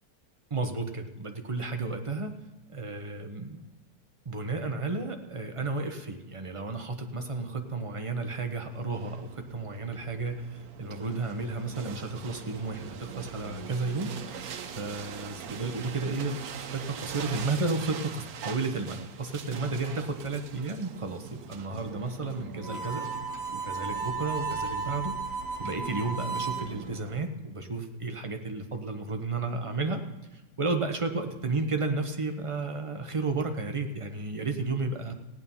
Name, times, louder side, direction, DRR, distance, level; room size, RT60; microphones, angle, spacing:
voice 1, 0.5-2.3 2.7-3.7 4.2-16.4 16.7-23.0 23.5-25.1 25.6-30.0 30.3-35.1, right 3 dB, 25° right, 5 dB, 0.9 m, -33 dB
sound 1, 8.6-27.2, right 7 dB, 85° right, 1.3 m, -43 dB
Harmonica, 22.6-26.7, right 4 dB, 45° left, 3.4 m, -34 dB
16.5 x 9.2 x 5.5 m, 1.1 s
omnidirectional pair, 1.6 m